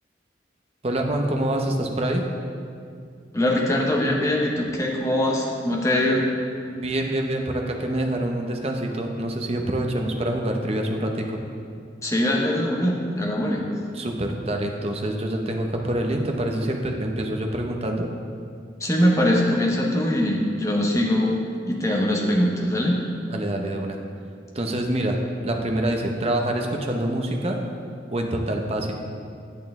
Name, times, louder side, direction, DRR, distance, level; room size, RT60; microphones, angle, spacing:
voice 1, 0.8-2.2 6.7-11.4 13.9-18.1 23.3-24.0 24.5-27.6 28.1-28.9, right 1 dB, 30° right, 2 dB, 0.7 m, -26 dB
voice 2, 3.3-6.3 12.0-13.7 18.8-21.3 21.7-23.0, left 1 dB, 15° left, -1 dB, 0.9 m, -22 dB
8.6 x 8.4 x 3.6 m, 2.3 s
head